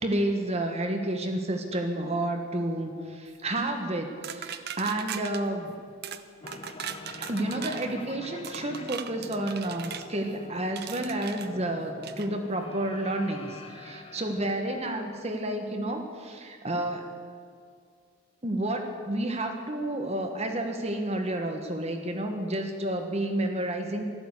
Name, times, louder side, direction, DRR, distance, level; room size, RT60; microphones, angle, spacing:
voice 1, 0.0-5.8 7.2-17.1 18.4-24.0, right 1 dB, 30° right, 4 dB, 1.3 m, -30 dB
sound 1, 4.2-5.4 6.0-6.2 6.5-7.9 8.4-10.1 10.8-11.5 12.0-12.3, right 8 dB, 50° right, 0.7 m, -39 dB
sound 2, 6.4-15.4, left 2 dB, 25° left, 1.0 m, -46 dB
13.0 x 12.0 x 8.2 m, 2.2 s
head